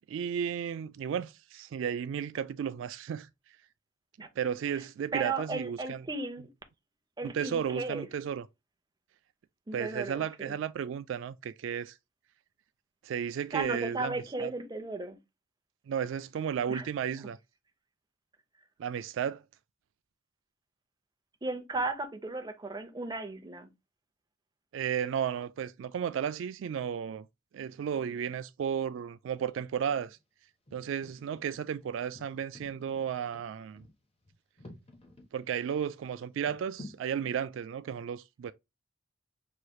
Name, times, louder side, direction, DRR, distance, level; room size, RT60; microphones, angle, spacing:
voice 1, 0.1-3.3 4.4-6.0 7.2-8.4 9.7-11.9 13.0-14.5 15.9-17.4 18.8-19.4 24.7-27.3 27.5-30.2 30.7-33.8 35.3-38.5, right 8 dB, 75° right, 0.3 m, -33 dB
voice 2, 5.1-6.5 7.2-8.1 9.7-10.6 13.5-15.2 16.7-16.9 21.4-23.7, right 3 dB, 20° right, 0.7 m, -35 dB
sound 1, 29.8-30.2 30.7-35.3 35.7-35.8 36.5-37.0, left 1 dB, 30° left, 1.1 m, -51 dB
5.6 x 3.2 x 2.3 m
head